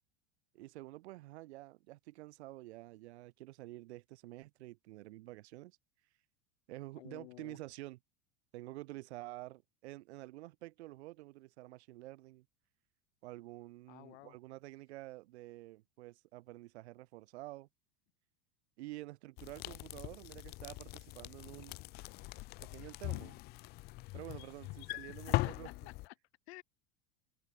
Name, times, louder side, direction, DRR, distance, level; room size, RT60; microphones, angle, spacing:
voice 1, 0.5-5.8 6.7-8.0 8.5-12.4 13.2-17.7 18.8-21.8 22.6-23.4 24.1-25.7, right 18 dB, 80° right, 6.9 m, -49 dB
voice 2, 7.0-7.6 13.9-14.4 25.1-26.1 26.5-26.6, left 19 dB, 80° left, 6.2 m, -53 dB
sound 1, 19.4-26.1, left 21 dB, 30° left, 0.4 m, -41 dB
supercardioid pair, 155°, 32 cm